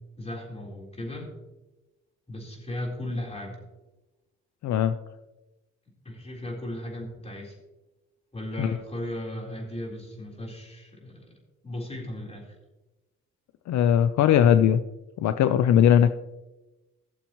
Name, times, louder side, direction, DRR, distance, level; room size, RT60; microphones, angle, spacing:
voice 1, 0.2-1.3 2.3-3.6 6.0-7.6 8.3-11.3 11.6-12.5, left 1 dB, 20° left, -1 dB, 3.9 m, -36 dB
voice 2, 4.6-4.9 8.6-8.8 13.7-14.8 15.2-16.1, left 9 dB, 65° left, 10 dB, 0.6 m, -19 dB
17.5 x 6.9 x 3.0 m, 1.0 s
cardioid pair, 90°, 30 cm